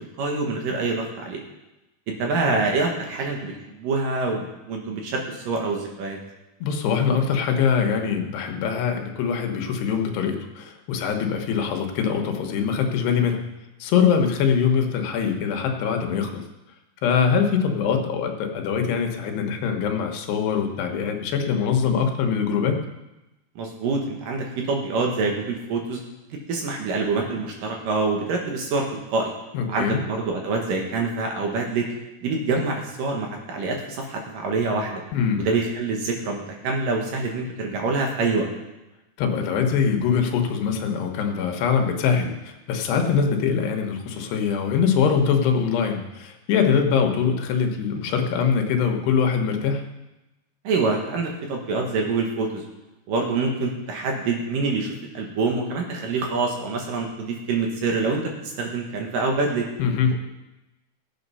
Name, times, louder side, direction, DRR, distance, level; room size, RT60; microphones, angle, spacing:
voice 1, 0.0-1.4 2.1-6.2 23.6-26.0 26.3-29.3 29.7-31.9 32.2-35.0 35.4-38.5 50.6-52.6 53.1-59.7, right 3 dB, 65° right, 1 dB, 2.6 m, -26 dB
voice 2, 6.6-13.4 13.8-16.4 17.0-22.8 29.5-30.0 35.1-35.4 39.2-49.8 59.8-60.2, left 6 dB, 80° left, 4 dB, 3.2 m, -23 dB
15.0 x 8.1 x 5.5 m, 0.99 s
omnidirectional pair, 4.8 m